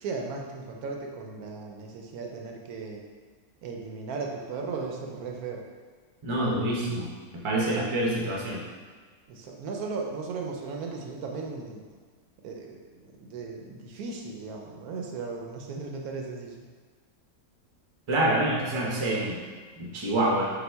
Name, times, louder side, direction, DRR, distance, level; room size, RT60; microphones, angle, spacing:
voice 1, 0.0-3.0 3.6-5.6 9.3-11.8 12.4-16.6, right 4 dB, 80° right, 1 dB, 1.1 m, -36 dB
voice 2, 6.2-7.1 7.3-8.6 18.1-19.4 19.8-20.5, right 1 dB, 40° right, -4 dB, 0.4 m, -26 dB
5.8 x 2.1 x 3.3 m, 1.5 s
omnidirectional pair, 1.6 m